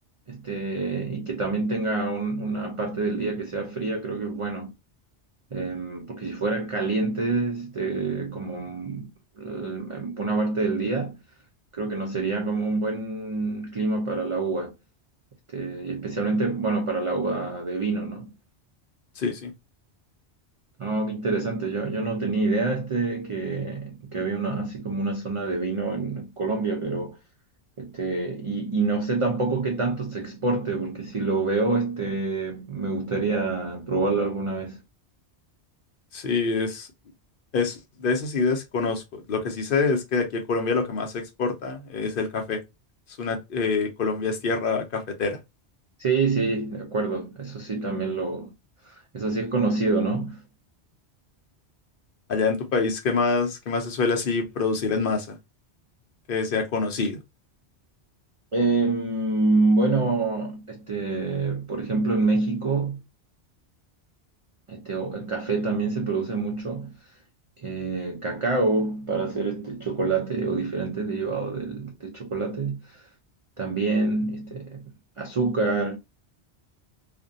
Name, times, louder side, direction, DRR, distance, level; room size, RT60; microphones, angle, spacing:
voice 1, 0.3-4.7 5.5-9.1 9.4-11.2 11.7-14.7 15.5-18.3 20.8-27.2 27.8-34.8 46.0-48.5 48.8-50.4 58.5-63.0 64.7-67.0 67.6-73.0 73.6-74.8 75.2-76.0, right 3 dB, 55° right, 0.3 m, -27 dB
voice 2, 19.2-19.5 36.1-36.9 37.5-39.0 39.3-42.6 43.2-45.4 52.3-55.4 56.3-57.2, left 4 dB, 60° left, 0.7 m, -26 dB
2.5 x 2.2 x 2.5 m
omnidirectional pair, 1.1 m